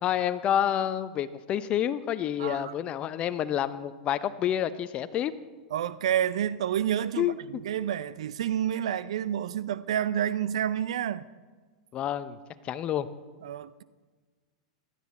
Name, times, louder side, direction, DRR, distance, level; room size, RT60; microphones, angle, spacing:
voice 1, 0.0-5.3 7.2-7.6 11.9-12.4 12.6-13.1, left 10 dB, 35° left, 0.7 m, -28 dB
voice 2, 2.4-2.7 5.7-11.2 13.4-13.8, right 10 dB, 70° right, 0.5 m, -29 dB
16.0 x 12.0 x 4.2 m
hypercardioid pair, 105°, 3 cm